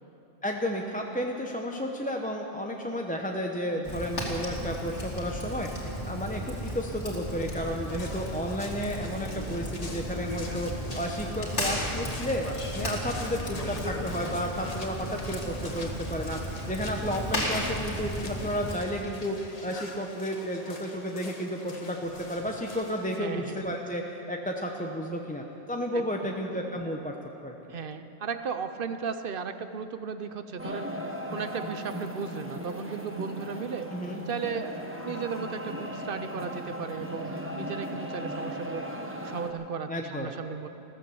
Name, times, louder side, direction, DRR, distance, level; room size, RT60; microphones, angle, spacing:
voice 1, 0.4-12.5 12.7-16.4 16.7-27.1 27.4-27.5 33.9-34.2 39.9-40.3, equal, 10° left, 1 dB, 0.7 m, -32 dB
Fire, 3.8-18.8, equal, 75° left, 2.9 m, -35 dB
sound 1, 7.9-23.2, left 2 dB, 35° left, 1.4 m, -43 dB
voice 2, 23.2-23.7 25.9-26.3 27.7-31.0 31.3-33.9 34.3-38.9 39.2-40.7, right 6 dB, 55° right, 9 dB, 0.8 m, -35 dB
sound 2, 30.6-39.5, equal, 10° right, 1.1 m, -37 dB
15.0 x 14.0 x 7.0 m, 2.9 s
omnidirectional pair, 1.2 m